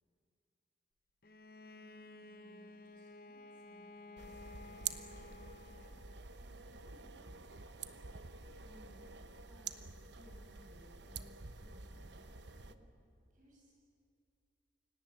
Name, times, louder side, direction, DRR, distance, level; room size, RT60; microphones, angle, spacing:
Bowed string instrument, 1.2-6.4, left 2 dB, 50° left, 0.8 m, -54 dB
voice 1, 1.6-6.0 6.3-7.5 13.3-13.8, equal, 45° right, -2 dB, 7.6 m, -66 dB
sound 1, 4.2-12.7, right 6 dB, 70° right, 1.1 m, -48 dB
voice 2, 8.6-12.9, equal, 10° left, -5 dB, 6.4 m, -62 dB
29.0 x 17.5 x 9.3 m, 2.7 s
head